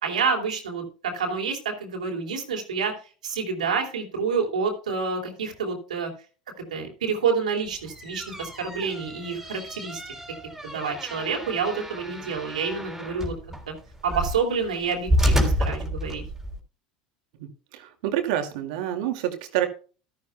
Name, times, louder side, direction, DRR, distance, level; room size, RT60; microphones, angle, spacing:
voice 1, 0.0-2.9 3.2-6.1 6.7-10.0 10.6-13.3 13.7-13.8 14.0-16.2, right 5 dB, 85° right, 3 dB, 3.1 m, -28 dB
sound 1, 7.7-16.6, equal, 10° right, 3.4 m, -29 dB
voice 2, 17.7-19.7, right 12 dB, 70° right, 6 dB, 2.3 m, -27 dB
14.0 x 13.0 x 2.2 m, 0.37 s
hypercardioid pair, 85°, 4 cm